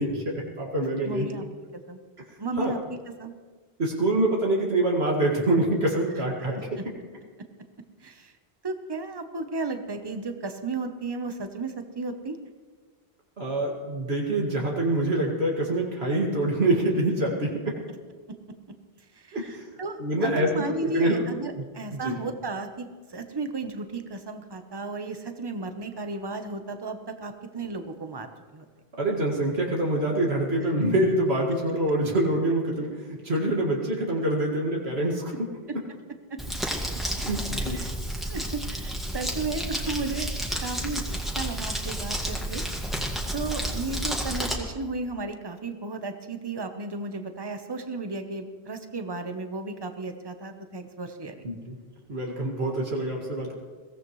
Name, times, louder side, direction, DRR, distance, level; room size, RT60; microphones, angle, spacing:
voice 1, 0.0-1.3 2.6-2.8 3.8-6.7 13.4-17.8 19.3-19.7 20.0-21.3 21.9-22.2 29.0-32.9 33.2-35.3 37.2-37.8 51.4-51.8 52.1-53.5, right 1 dB, 80° right, -2 dB, 2.5 m, -25 dB
voice 2, 1.0-1.4 1.9-2.0 2.4-3.3 6.5-6.8 8.0-8.3 8.6-12.4 18.3-18.4 19.2-28.6 36.3-36.4 37.6-37.9 38.3-41.0 41.3-42.6 43.0-51.4, right 3 dB, 25° right, 7 dB, 1.0 m, -34 dB
Crumpling crinkling, 36.4-44.5, equal, ahead, 1.9 m, -31 dB
22.0 x 16.0 x 3.2 m, 1.5 s
omnidirectional pair, 1.1 m